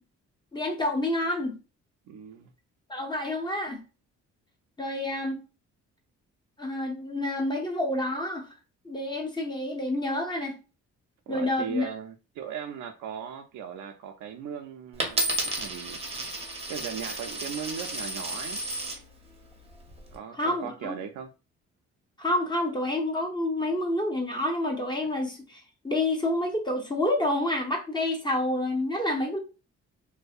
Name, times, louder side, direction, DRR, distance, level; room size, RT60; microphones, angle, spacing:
voice 1, 0.5-1.6 2.9-3.8 4.8-5.4 6.6-8.5 8.8-10.6 11.3-11.9 20.3-21.0 22.2-29.4, left 1 dB, 15° left, 0.7 m, -28 dB
voice 2, 2.1-2.5 11.3-16.0 16.7-18.6 20.1-21.3, right 8 dB, 75° right, 0.4 m, -38 dB
Coin (dropping), 15.0-19.0 19.7-20.1, right 2 dB, 20° right, 0.7 m, -32 dB
2.6 x 2.1 x 2.3 m
cardioid pair, 90°, 30 cm